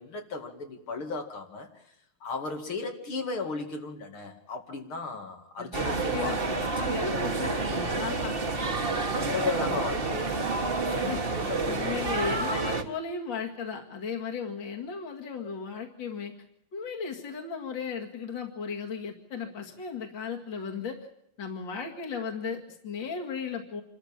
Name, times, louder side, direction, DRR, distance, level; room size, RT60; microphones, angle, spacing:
voice 1, 0.0-2.0 2.2-6.5 7.0-7.3 8.0-10.4 10.8-12.0, left 4 dB, 85° left, 3 dB, 3.3 m, -36 dB
sound 1, 5.7-12.8, right 3 dB, 30° right, 1.7 m, -29 dB
voice 2, 6.1-8.3 11.0-16.3 16.7-21.0 21.4-23.8, left 5 dB, 60° left, 2 dB, 2.9 m, -36 dB
27.0 x 13.5 x 8.9 m, 0.77 s
omnidirectional pair, 2.3 m